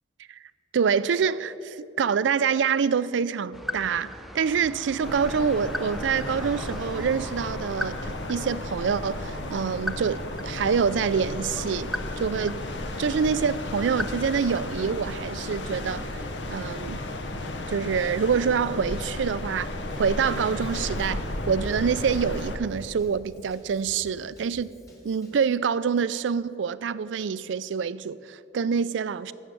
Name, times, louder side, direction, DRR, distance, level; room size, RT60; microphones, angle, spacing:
voice 1, 0.7-12.6 13.0-16.0 16.5-17.0 17.7-19.7 20.0-24.7 25.0-29.3, right 6 dB, 80° right, 0.4 m, -26 dB
sound 1, 3.5-15.0, left 1 dB, ahead, 0.5 m, -39 dB
sound 2, 5.0-22.6, left 1 dB, 70° left, 1.0 m, -34 dB
Drum kit / Drum, 19.9-25.5, equal, 20° left, 2.0 m, -53 dB
14.5 x 6.4 x 8.4 m
head